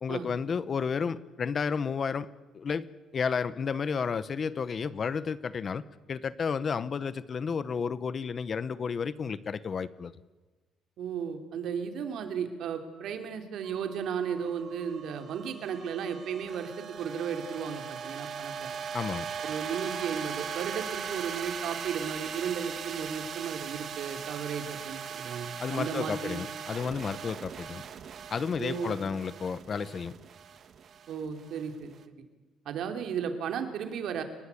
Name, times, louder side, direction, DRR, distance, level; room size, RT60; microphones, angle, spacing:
voice 1, 0.0-2.3 2.5-5.8 6.1-10.1 18.9-19.3 25.6-27.8 28.3-30.1, left 6 dB, 35° left, 16 dB, 0.8 m, -32 dB
voice 2, 11.0-18.7 19.4-26.4 28.6-29.0 31.1-31.9 32.6-34.2, right 7 dB, 60° right, 6 dB, 3.3 m, -34 dB
sound 1, 13.6-32.0, right 7 dB, 45° right, 1.4 m, -40 dB
29.5 x 20.0 x 8.4 m, 1.2 s
cardioid pair, 160°, 0 cm